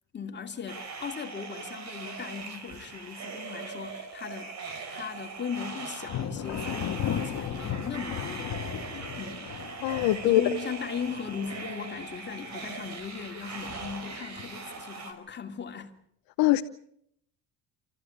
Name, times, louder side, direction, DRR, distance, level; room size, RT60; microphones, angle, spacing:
voice 1, 0.1-8.6 9.2-9.5 10.2-16.0, left 6 dB, 30° left, 2.6 m, -38 dB
sound 1, 0.7-15.1, right 4 dB, 50° right, 4.8 m, -41 dB
Thunder, 6.0-12.5 12.9-13.4 13.9-14.7, left 9 dB, 55° left, 1.8 m, -36 dB
voice 2, 9.8-10.4 16.4-16.6, left 16 dB, 80° left, 1.0 m, -22 dB
29.5 x 14.0 x 8.6 m
cardioid pair, 125°, 34 cm